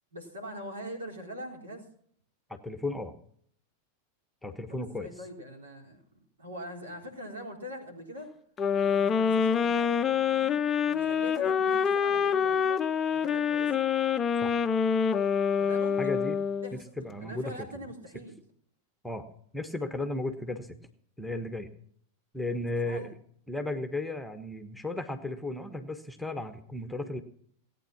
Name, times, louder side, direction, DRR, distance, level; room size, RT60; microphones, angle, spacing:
voice 1, 0.1-1.9 4.7-6.0 6.4-8.3 8.8-10.6 10.9-12.8 13.1-13.8 15.6-16.2 16.6-16.9 17.2-18.4 22.9-23.2, equal, 70° right, 2 dB, 3.8 m, -43 dB
voice 2, 2.5-3.1 4.4-5.1 14.4-14.5 16.0-16.4 16.7-17.7 19.0-19.3 19.5-20.7 21.2-21.7 22.3-23.1 23.5-27.2, left 2 dB, ahead, 8 dB, 1.3 m, -34 dB
sound 1, 8.6-16.8, left 7 dB, 25° left, 0.6 m, -26 dB
17.5 x 9.2 x 6.0 m, 0.63 s
figure-of-eight pair, 90°, 0 cm